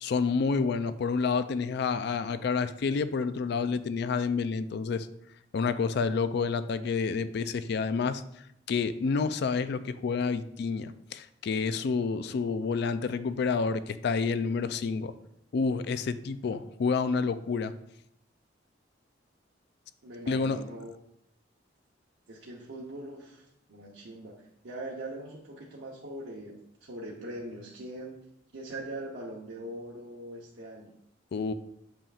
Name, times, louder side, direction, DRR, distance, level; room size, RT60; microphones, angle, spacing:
voice 1, 0.0-5.1 5.5-8.2 8.7-15.1 15.5-17.7 20.3-20.6 31.3-31.5, left 5 dB, 60° left, 13 dB, 0.4 m, -29 dB
voice 2, 20.0-20.9 22.3-28.2 28.5-30.9, right 1 dB, 75° right, -3 dB, 0.8 m, -42 dB
7.1 x 5.6 x 2.4 m, 0.76 s
head